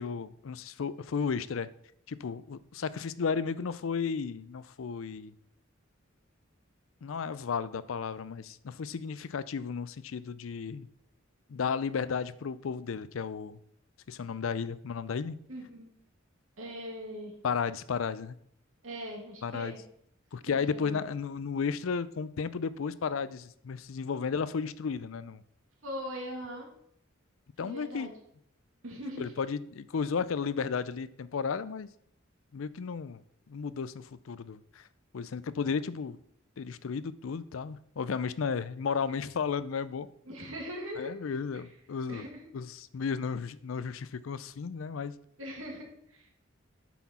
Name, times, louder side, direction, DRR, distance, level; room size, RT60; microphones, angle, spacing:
voice 1, 0.0-1.7 2.1-5.3 7.0-10.9 11.5-13.6 14.1-15.4 17.4-18.4 19.4-19.7 20.3-25.4 27.6-28.1 29.2-31.9 32.5-33.2 33.5-34.8 35.1-36.2 36.6-40.1 41.0-42.2 42.5-45.1, left 6 dB, 75° left, 16 dB, 0.5 m, -33 dB
voice 2, 15.5-15.9 16.6-17.3 18.8-19.8 20.5-21.0 25.8-26.7 27.6-28.1 28.8-29.3 40.3-41.1 42.1-42.4 45.4-46.3, equal, 75° right, -1 dB, 2.2 m, -41 dB
8.2 x 6.1 x 4.2 m, 0.70 s
head